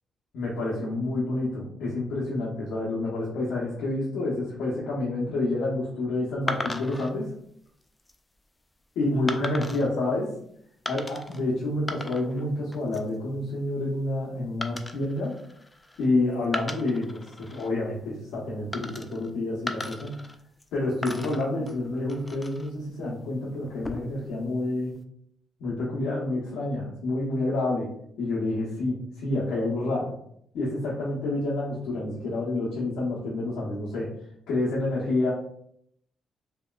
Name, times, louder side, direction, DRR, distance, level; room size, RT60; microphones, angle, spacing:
voice 1, 0.3-7.3 9.0-10.3 10.9-15.4 16.0-20.1 20.7-24.9 25.6-27.9 28.2-30.1 30.5-34.1 34.5-35.3, left 2 dB, 85° left, -6 dB, 0.8 m, -28 dB
sound 1, 6.5-7.1 7.8-8.2 9.3-9.9 10.9-11.4 11.7-12.4 12.7-13.2 14.6-16.1 16.4-17.7 18.7-19.3 19.7-20.7 21.0-22.7 23.7-24.3, left 1 dB, 15° left, 0.3 m, -36 dB
3.0 x 2.9 x 2.3 m, 0.70 s
cardioid pair, 90°, 0 cm